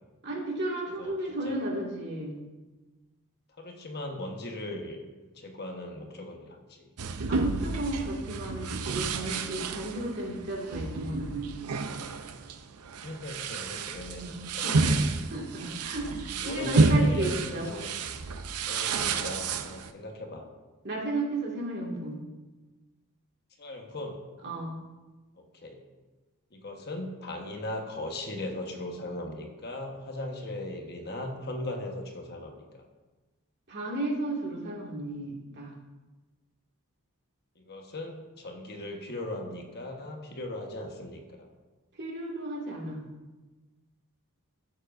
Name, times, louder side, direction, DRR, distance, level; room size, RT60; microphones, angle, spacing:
voice 1, 0.2-2.4 7.3-11.7 14.2-15.0 15.3-17.7 20.8-22.2 24.4-24.7 33.7-35.7 42.0-43.0, right 2 dB, 50° right, -2 dB, 2.0 m, -34 dB
voice 2, 0.9-1.7 3.6-5.0 5.4-6.9 13.0-14.2 14.5-15.0 15.6-15.7 16.4-17.9 18.7-20.4 23.6-24.2 25.5-25.8 26.5-32.8 37.6-41.5, left 1 dB, 45° left, 2 dB, 1.2 m, -38 dB
sound 1, 7.0-19.9, right 3 dB, 75° right, 0.6 m, -30 dB
14.0 x 7.1 x 2.6 m, 1.2 s
head